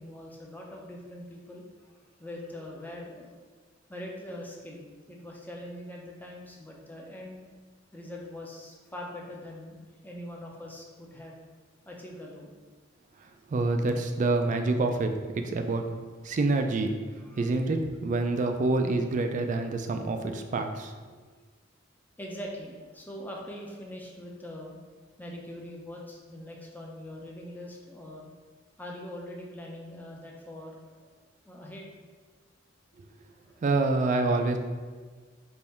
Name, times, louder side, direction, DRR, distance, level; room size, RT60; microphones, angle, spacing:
voice 1, 0.0-3.3 3.9-7.4 7.9-11.4 11.8-12.5 17.2-17.6 18.2-18.3 22.2-24.8 25.2-28.3 28.8-31.0 31.4-31.9 33.4-33.7, left 1 dB, 10° left, -1 dB, 0.5 m, -42 dB
voice 2, 13.5-15.8 16.2-16.9 17.4-20.9 33.6-34.6, right 3 dB, 40° right, 5 dB, 0.3 m, -27 dB
3.5 x 2.6 x 4.2 m, 1.4 s
head